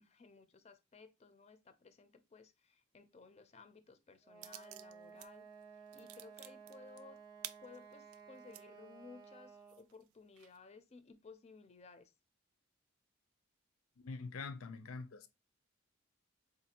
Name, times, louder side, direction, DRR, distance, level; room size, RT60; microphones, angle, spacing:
voice 1, 0.0-5.5 5.7-7.2 7.6-12.1, left 4 dB, 30° left, 0.4 m, -58 dB
Wind instrument woodwind instrument, 4.2-9.9, right 6 dB, 20° right, 0.6 m, -56 dB
sound 1, 4.4-5.3 5.6-8.6 9.2-9.3 9.7-10.6, right 14 dB, 90° right, 0.3 m, -51 dB
voice 2, 14.0-15.3, left 4 dB, 90° left, 0.5 m, -45 dB
4.4 x 2.5 x 2.7 m
head